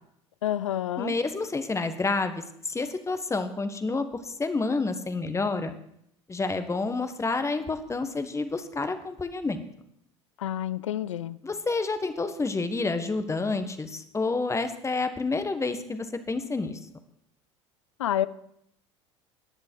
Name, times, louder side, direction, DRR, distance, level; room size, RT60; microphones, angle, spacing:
voice 1, 0.4-1.2 10.4-11.4 18.0-18.3, left 11 dB, 80° left, 18 dB, 0.5 m, -28 dB
voice 2, 1.0-5.7 6.3-9.6 11.4-16.8, left 3 dB, 20° left, 9 dB, 1.4 m, -29 dB
14.5 x 10.5 x 4.6 m, 0.74 s
hypercardioid pair, 70°, 16 cm